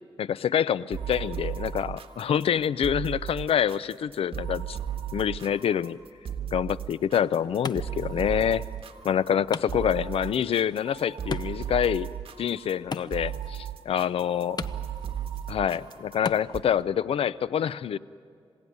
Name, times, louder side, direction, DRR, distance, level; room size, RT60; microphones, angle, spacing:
voice 1, 0.2-4.8 5.1-6.0 6.5-8.6 9.0-12.1 12.4-14.6 15.5-18.0, left 9 dB, 75° left, 18 dB, 0.5 m, -26 dB
sound 1, 0.9-16.6, right 9 dB, 70° right, 1.6 m, -36 dB
Wood, 6.8-16.8, left 5 dB, 45° left, 0.8 m, -42 dB
26.5 x 17.0 x 9.5 m, 2.4 s
cardioid pair, 90°, 10 cm